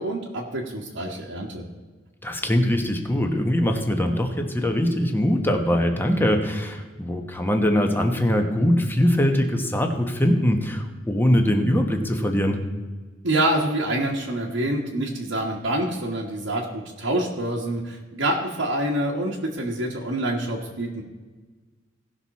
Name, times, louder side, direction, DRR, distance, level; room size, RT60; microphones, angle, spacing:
voice 1, 0.0-1.7 13.2-21.0, right 1 dB, 75° right, -4 dB, 1.4 m, -26 dB
voice 2, 2.2-12.6, equal, 10° left, 4 dB, 1.1 m, -22 dB
17.5 x 6.0 x 4.2 m, 1.3 s
head